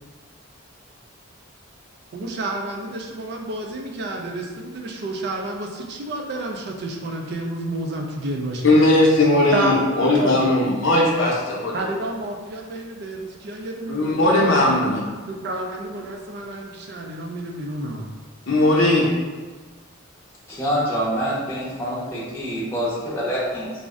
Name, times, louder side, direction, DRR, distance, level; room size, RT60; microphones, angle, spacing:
voice 1, 2.1-8.7 9.5-9.8 10.0-10.5 11.7-14.9 15.3-18.1, right 1 dB, 50° right, 2 dB, 0.3 m, -30 dB
voice 2, 8.6-11.8 13.9-15.0 18.5-19.1, left 1 dB, 60° left, -4 dB, 0.6 m, -18 dB
voice 3, 20.5-23.7, equal, 10° left, -8 dB, 0.6 m, -26 dB
2.5 x 2.0 x 3.6 m, 1.4 s
head